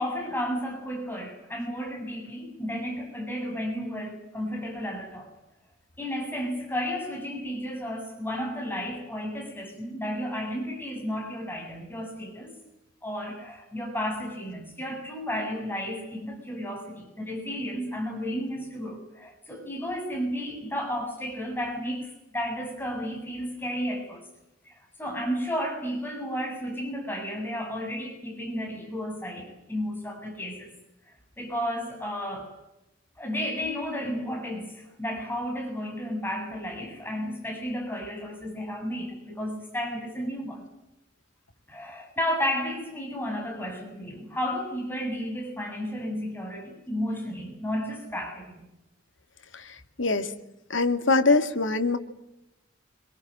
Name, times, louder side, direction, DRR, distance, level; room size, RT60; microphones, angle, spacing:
voice 1, 0.0-5.3 6.0-12.6 13.0-24.3 24.6-30.7 31.4-32.5 33.2-40.6 41.7-48.5, equal, 10° left, 7.8 m, -33 dB
voice 2, 50.0-50.3 50.7-52.0, left 3 dB, 85° left, 2.4 m, -22 dB
26.5 x 26.0 x 7.7 m
head